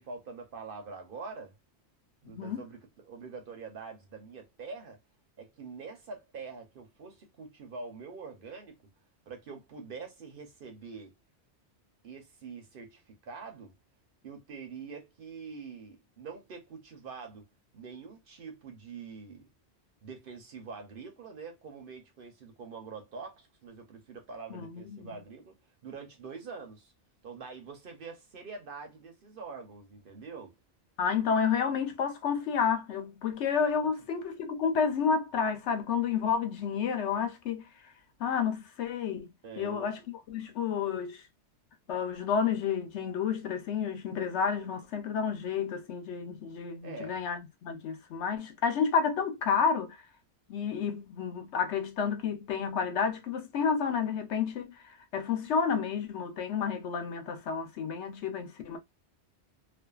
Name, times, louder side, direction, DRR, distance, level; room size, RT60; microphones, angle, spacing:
voice 1, 0.0-1.6 2.2-5.0 5.4-8.8 9.3-11.1 12.0-13.7 14.2-17.4 17.7-19.5 20.0-25.6 25.8-26.9 27.2-30.6 39.4-39.9 46.8-47.2, right 4 dB, 55° right, 0.8 m, -45 dB
voice 2, 2.3-2.6 24.5-25.2 31.0-37.6 38.2-39.3 39.6-40.0 40.3-41.2 41.9-50.0 50.5-58.8, left 6 dB, 85° left, 1.0 m, -30 dB
2.5 x 2.4 x 2.3 m
omnidirectional pair, 1.1 m